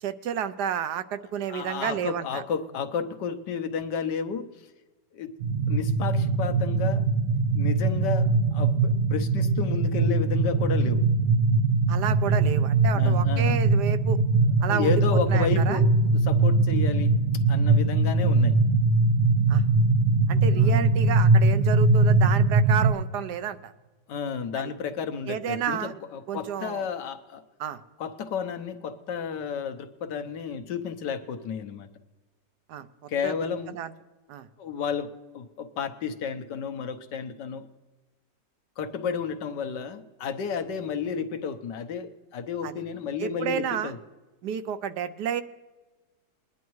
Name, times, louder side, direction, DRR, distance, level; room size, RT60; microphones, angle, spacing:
voice 1, 0.0-2.4 11.9-14.2 14.6-15.0 15.3-15.8 19.5-19.6 20.3-23.7 24.6-24.7 25.3-25.9 26.3-26.8 27.6-27.8 32.7-32.9 33.2-33.3 33.7-33.9 34.3-34.5 42.6-42.7 43.2-43.9 44.4-45.4, right 8 dB, 75° right, 11 dB, 1.2 m, -30 dB
voice 2, 1.5-4.5 5.1-5.3 5.7-7.1 7.5-11.0 12.9-13.6 14.7-17.1 17.5-18.5 20.5-20.9 24.1-27.4 28.0-31.9 33.1-33.8 34.6-37.7 38.8-44.0, left 6 dB, 80° left, 7 dB, 1.5 m, -32 dB
sound 1, 5.4-22.9, right 3 dB, 55° right, 1.8 m, -21 dB
21.5 x 10.5 x 3.1 m, 1.2 s
omnidirectional pair, 1.8 m